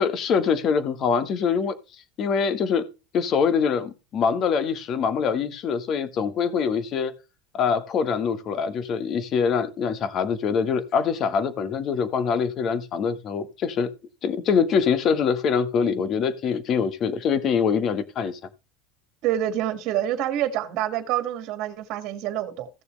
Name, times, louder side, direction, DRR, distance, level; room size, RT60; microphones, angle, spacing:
voice 1, 0.0-1.8 2.2-2.8 3.1-7.1 7.5-13.9 14.2-18.4, left 6 dB, 35° left, 1.3 m, -24 dB
voice 2, 19.2-22.7, right 12 dB, 50° right, 1.8 m, -27 dB
16.0 x 6.8 x 3.2 m
supercardioid pair, 150°, 0 cm